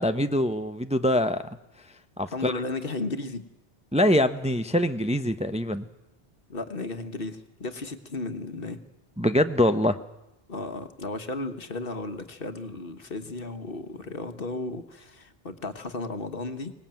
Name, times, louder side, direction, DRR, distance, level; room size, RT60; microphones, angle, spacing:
voice 1, 0.0-1.4 2.2-2.5 3.9-5.9 9.2-10.0, left 1 dB, 5° right, 9 dB, 0.7 m, -24 dB
voice 2, 2.3-3.4 6.5-8.8 10.5-16.7, left 2 dB, 60° left, 8 dB, 1.7 m, -34 dB
23.5 x 19.5 x 9.0 m, 0.91 s
omnidirectional pair, 1.1 m